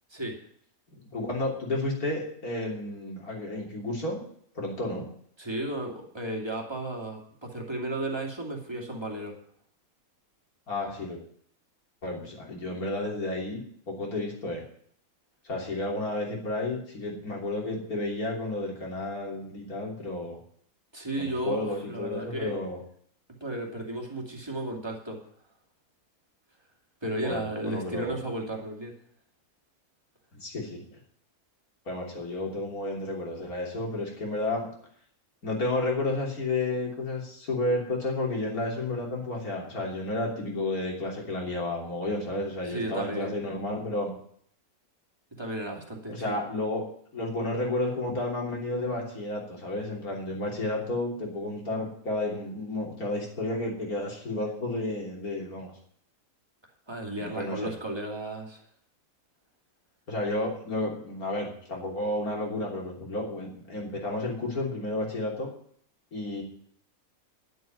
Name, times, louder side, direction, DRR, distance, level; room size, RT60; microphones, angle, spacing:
voice 1, 1.1-4.2 4.6-5.1 10.7-11.2 12.0-13.6 13.9-14.6 15.4-20.4 21.2-22.8 27.2-28.2 30.3-30.9 31.9-34.7 35.4-44.1 46.1-46.8 47.1-55.7 57.2-57.7 60.1-65.5 66.1-66.4, left 2 dB, 90° left, -1 dB, 3.7 m, -31 dB
voice 2, 5.4-9.4 20.9-22.5 23.4-25.2 27.0-28.9 42.7-43.3 45.3-46.4 56.9-58.6, right 1 dB, 15° right, 0 dB, 2.6 m, -34 dB
10.5 x 7.9 x 9.1 m, 0.63 s
omnidirectional pair, 1.5 m